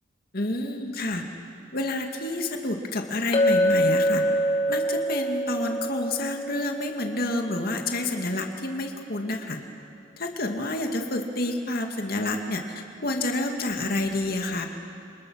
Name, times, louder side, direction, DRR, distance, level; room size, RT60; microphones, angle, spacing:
voice 1, 0.3-1.2 1.7-4.2 4.7-9.6 10.2-14.7, left 2 dB, 50° left, 3 dB, 2.2 m, -29 dB
Chink clink, 3.3-7.8, equal, 30° left, 2.5 m, -25 dB
29.5 x 27.0 x 6.4 m, 2.6 s
head